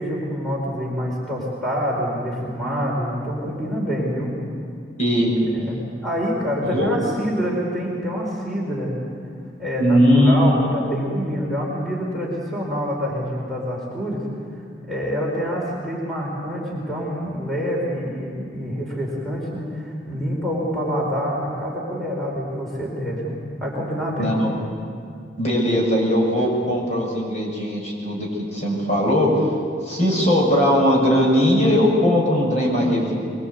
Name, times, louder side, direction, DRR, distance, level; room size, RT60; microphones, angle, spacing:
voice 1, 0.0-4.3 5.5-8.9 9.6-14.3 14.9-24.3, equal, ahead, -4 dB, 4.5 m, -26 dB
voice 2, 5.0-5.3 6.7-6.9 9.8-10.5 24.2-24.5 25.4-29.5 29.8-33.1, equal, 40° left, -2 dB, 6.5 m, -19 dB
23.0 x 23.0 x 8.3 m, 2.3 s
head